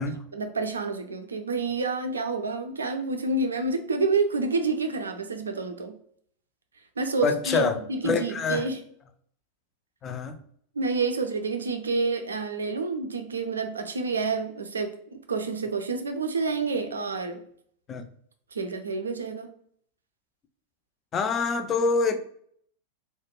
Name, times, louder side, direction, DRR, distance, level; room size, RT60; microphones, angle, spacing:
voice 1, 0.3-5.9 7.0-8.8 10.8-17.4 18.5-19.5, right 4 dB, 70° right, 0.4 m, -28 dB
voice 2, 7.2-7.8 8.0-8.7 10.0-10.4 17.9-18.1 21.1-22.2, left 4 dB, 25° left, 0.3 m, -25 dB
2.4 x 2.1 x 2.9 m
figure-of-eight pair, 90°, 0 cm